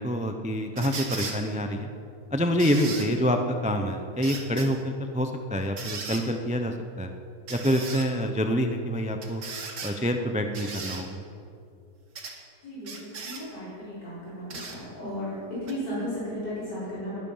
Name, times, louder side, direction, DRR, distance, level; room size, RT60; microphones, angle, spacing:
voice 1, 0.0-1.9 2.3-7.1 7.5-9.4 9.8-11.2, equal, 10° right, 5 dB, 0.4 m, -27 dB
sound 1, 0.8-1.4 2.6-3.1 4.2-4.7 5.8-6.2 7.5-8.1 9.2-9.9 10.5-11.0 12.2-12.4 12.8-13.4 14.5-14.8 15.7-15.8, right 4 dB, 85° right, 2.4 m, -36 dB
voice 2, 12.6-17.2, equal, 90° left, -10 dB, 5.3 m, -35 dB
20.5 x 10.5 x 5.7 m, 2.5 s
omnidirectional pair, 1.8 m